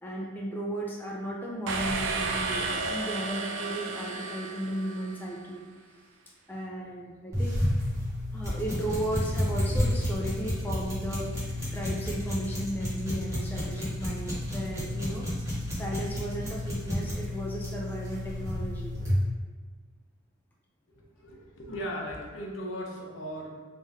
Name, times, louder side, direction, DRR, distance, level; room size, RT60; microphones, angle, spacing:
voice 1, 0.0-5.6 6.5-7.6 8.3-15.3 15.8-19.0, right 1 dB, 10° left, -3 dB, 0.3 m, -35 dB
sound 1, 1.7-5.4, right 3 dB, 60° right, 0.4 m, -33 dB
sound 2, 7.3-19.2, left 1 dB, 15° right, 1.3 m, -31 dB
voice 2, 20.9-23.5, equal, 65° left, -1 dB, 0.7 m, -37 dB
3.5 x 2.7 x 3.5 m, 1.5 s
head